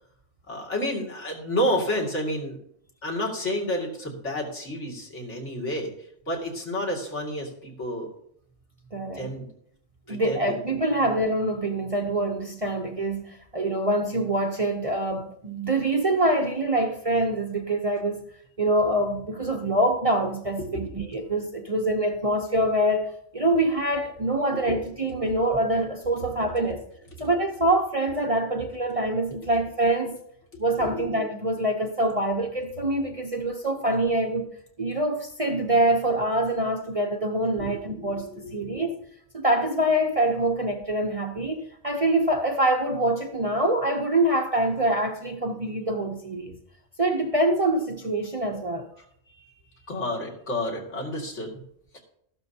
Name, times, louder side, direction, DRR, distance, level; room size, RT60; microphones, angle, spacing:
voice 1, 0.5-2.6 3.0-5.9 6.3-8.1 9.1-9.5 10.1-10.5 20.6-21.0 24.7-24.8 27.2-27.3 30.5-31.1 37.6-38.9 49.3-49.5 49.9-51.6 51.9-52.0, left 1 dB, 70° left, 2.7 m, -30 dB
voice 2, 8.9-9.3 10.1-18.2 18.6-26.8 27.2-30.2 30.6-34.5 34.8-38.9 39.3-46.5 47.0-48.9, right 1 dB, 35° right, 0.7 m, -25 dB
14.0 x 12.0 x 2.8 m
omnidirectional pair, 1.3 m